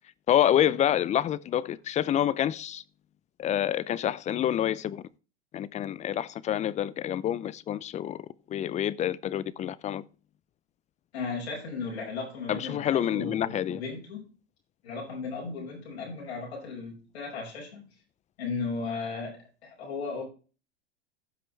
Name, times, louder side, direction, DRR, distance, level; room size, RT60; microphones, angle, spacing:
voice 1, 0.3-2.8 3.4-5.0 5.5-10.0 12.5-13.8, left 11 dB, 20° left, 0.5 m, -27 dB
voice 2, 11.1-14.3 14.8-17.9 18.4-20.2, left 4 dB, 80° left, 5.3 m, -36 dB
15.0 x 6.0 x 3.2 m
hypercardioid pair, 100°, 32 cm